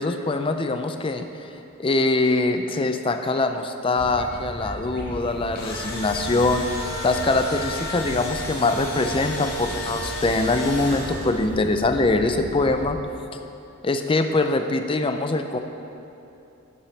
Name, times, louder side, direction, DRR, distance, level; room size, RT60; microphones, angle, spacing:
voice 1, 0.0-1.5 1.8-13.0 13.8-15.6, left 2 dB, 25° left, 7 dB, 0.4 m, -23 dB
sound 1, 3.9-13.0, equal, 50° right, 1.7 m, -37 dB
Engine / Drill, 5.3-11.5, left 1 dB, 45° left, 1.8 m, -33 dB
12.5 x 8.6 x 3.3 m, 2.9 s
head